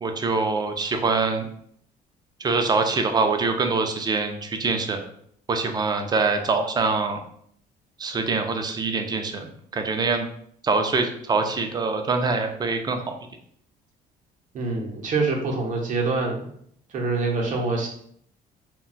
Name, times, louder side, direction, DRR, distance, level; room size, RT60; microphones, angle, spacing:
voice 1, 0.0-1.5 2.4-5.1 5.5-7.2 8.0-10.3 10.6-13.0, right 4 dB, 25° right, 5 dB, 0.4 m, -24 dB
voice 2, 14.5-16.5 16.9-17.9, right 3 dB, 50° right, 1 dB, 0.7 m, -25 dB
2.2 x 2.0 x 3.8 m, 0.66 s
cardioid pair, 110°, 17 cm